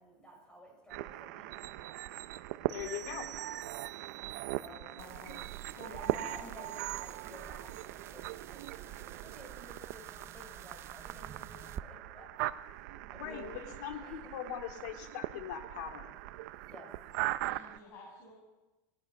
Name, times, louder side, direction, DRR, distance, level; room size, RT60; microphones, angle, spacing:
voice 1, 0.0-1.8 4.6-4.9 5.9-12.9 13.1-13.6 14.0-14.3 16.3-16.9, left 1 dB, 10° left, -1 dB, 6.3 m, -54 dB
sound 1, 0.9-17.8, right 16 dB, 65° right, 0.8 m, -40 dB
voice 2, 2.7-3.3 12.9-16.1, left 9 dB, 70° left, 4 dB, 3.0 m, -41 dB
sound 2, 2.7-4.2, right 11 dB, 50° right, 4.8 m, -50 dB
voice 3, 5.0-5.4 5.7-6.5 13.1-13.7 17.4-18.3, left 1 dB, 35° left, -4 dB, 7.7 m, -50 dB
sound 3, 5.0-11.8, right 9 dB, 25° right, 0.6 m, -51 dB
26.5 x 19.5 x 5.9 m, 1.1 s
supercardioid pair, 165°, 10 cm